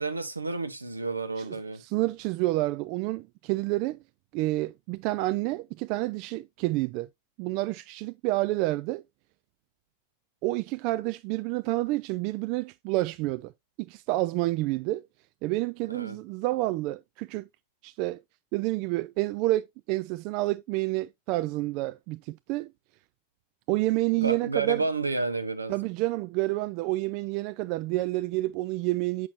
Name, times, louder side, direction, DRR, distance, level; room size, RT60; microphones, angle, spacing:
voice 1, 0.0-1.8 15.9-16.2 24.1-25.8, right 3 dB, 80° right, 0.8 m, -31 dB
voice 2, 1.8-4.0 4.3-7.1 7.4-9.0 10.4-13.5 13.8-15.0 15.4-17.5 17.8-18.2 18.5-22.7 23.7-24.8 25.7-29.3, right 19 dB, 45° right, 0.3 m, -29 dB
8.3 x 6.2 x 2.6 m
figure-of-eight pair, 90°, 0 cm